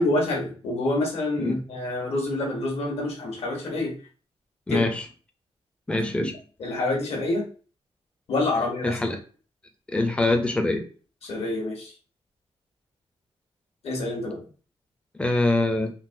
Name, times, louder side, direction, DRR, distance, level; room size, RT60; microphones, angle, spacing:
voice 1, 0.0-3.9 4.7-4.8 6.6-7.4 8.3-9.0 11.2-11.9 13.8-14.4, left 2 dB, 70° left, -1 dB, 1.2 m, -27 dB
voice 2, 4.7-5.0 5.9-6.3 8.8-9.2 9.9-10.8 15.2-15.9, left 2 dB, 10° left, 5 dB, 0.4 m, -24 dB
3.8 x 2.2 x 2.5 m, 0.40 s
wide cardioid pair, 165°, 11 cm